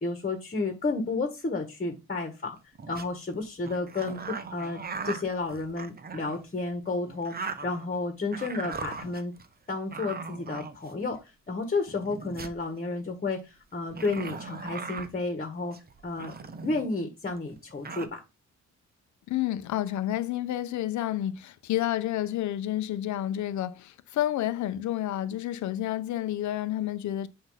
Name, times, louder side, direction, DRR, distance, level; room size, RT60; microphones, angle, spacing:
voice 1, 0.0-2.6 2.9-9.3 9.7-15.8 16.0-16.3 16.6-18.2, left 3 dB, 30° left, 1.6 m, -32 dB
sound 1, 2.6-3.1 3.6-6.4 7.0-8.0 8.3-9.5 9.9-11.2 11.9-12.6 13.9-15.1 15.7-16.9 17.3-17.4 17.6-18.1, right 4 dB, 30° right, 0.9 m, -39 dB
voice 2, 19.3-27.3, left 13 dB, 70° left, 0.7 m, -30 dB
8.2 x 2.9 x 5.7 m
cardioid pair, 90°, 30 cm